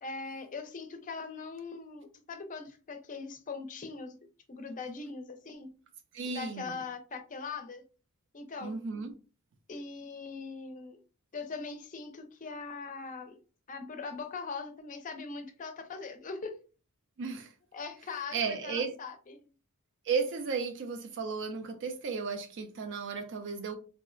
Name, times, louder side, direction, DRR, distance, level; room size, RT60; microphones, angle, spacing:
voice 1, 0.0-4.2 4.5-5.7 6.3-7.8 8.3-8.8 9.7-11.0 11.3-13.4 13.7-16.6 17.7-19.5, left 4 dB, 35° left, 0.5 m, -41 dB
voice 2, 6.1-6.8 8.6-9.1 17.2-17.5 18.3-18.9 20.1-23.8, right 5 dB, 55° right, 0.4 m, -34 dB
3.5 x 2.0 x 2.4 m
head